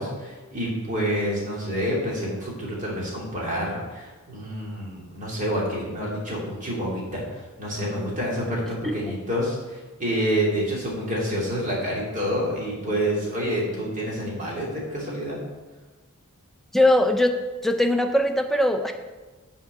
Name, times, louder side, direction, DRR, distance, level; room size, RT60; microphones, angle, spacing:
voice 1, 0.0-15.4, equal, 35° right, -4 dB, 2.7 m, -28 dB
voice 2, 16.7-17.4 17.6-18.9, left 1 dB, ahead, 4 dB, 0.6 m, -20 dB
7.6 x 4.5 x 6.7 m, 1.3 s
head